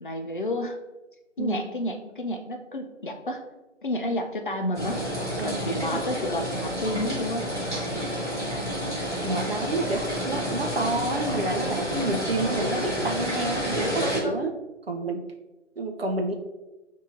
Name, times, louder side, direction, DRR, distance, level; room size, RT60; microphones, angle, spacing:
voice 1, 0.0-0.8 1.4-3.4 3.8-5.0 5.4-7.5 13.8-14.5, left 1 dB, 45° left, 4 dB, 0.5 m, -30 dB
voice 2, 1.4-1.7 5.4-6.0 9.2-14.5 14.9-15.2 15.8-16.3, right 2 dB, 55° right, 3 dB, 0.7 m, -29 dB
sound 1, 4.7-14.2, equal, ahead, 0.9 m, -30 dB
6.7 x 2.8 x 2.5 m, 1.1 s
figure-of-eight pair, 160°, 37 cm